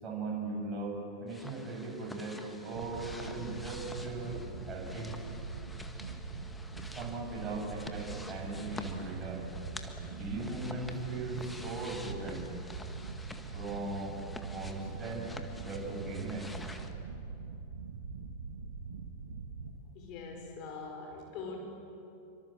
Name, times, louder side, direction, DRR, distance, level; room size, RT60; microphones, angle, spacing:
voice 1, 0.0-5.2 6.9-9.5 10.0-12.5 13.5-14.2 14.5-16.5, right 2 dB, 25° right, -2 dB, 7.5 m, -39 dB
sound 1, 1.3-16.9, left 2 dB, 5° left, 1.9 m, -49 dB
sound 2, 2.7-19.7, right 5 dB, 65° right, 1.6 m, -43 dB
voice 2, 19.9-21.6, left 4 dB, 40° left, 2 dB, 5.3 m, -43 dB
28.0 x 24.5 x 7.6 m, 2.8 s
figure-of-eight pair, 90°, 0 cm